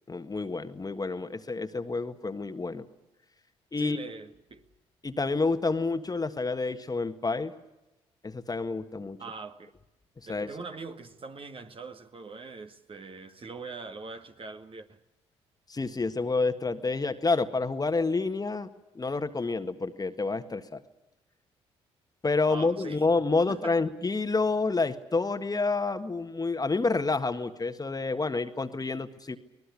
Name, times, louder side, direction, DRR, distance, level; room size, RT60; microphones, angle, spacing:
voice 1, 0.1-2.8 3.7-4.0 5.0-7.5 8.2-9.2 10.3-10.5 15.7-18.7 18.9-20.8 22.2-29.4, left 3 dB, 25° left, 1.7 m, -28 dB
voice 2, 3.8-4.6 9.2-9.7 10.3-15.0 22.5-23.0 23.5-23.8, right 4 dB, 40° right, 2.0 m, -42 dB
24.5 x 19.0 x 8.5 m
hypercardioid pair, 50°, 14 cm